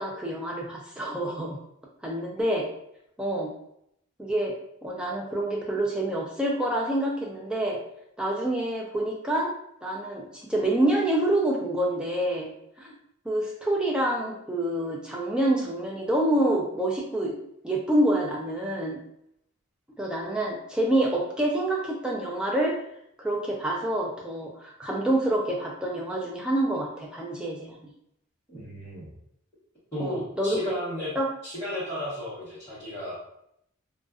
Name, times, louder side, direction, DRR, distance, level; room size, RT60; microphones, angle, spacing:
voice 1, 0.0-1.6 2.0-2.7 3.2-3.5 4.2-4.5 4.8-7.8 8.2-9.5 9.8-12.5 12.8-12.9 13.3-17.3 17.6-19.0 20.0-22.7 23.2-27.8 30.0-30.6 31.2-31.3, right 1 dB, 5° right, -2 dB, 0.3 m, -27 dB
voice 2, 28.5-29.1 29.9-31.1 31.4-33.2, left 1 dB, 15° left, -17 dB, 1.0 m, -34 dB
2.4 x 2.2 x 2.3 m, 0.75 s
head